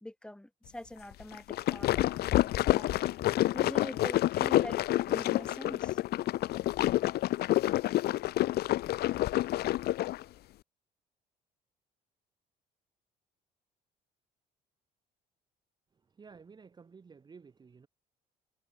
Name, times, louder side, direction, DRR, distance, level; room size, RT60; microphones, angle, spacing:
voice 1, 0.0-3.0 3.5-6.0, left 1 dB, 5° left, 2.1 m, -44 dB
sound 1, 1.3-10.2, left 15 dB, 70° left, 1.1 m, -28 dB
voice 2, 16.2-17.9, right 5 dB, 25° right, 0.9 m, -53 dB
cardioid pair, 110°, 17 cm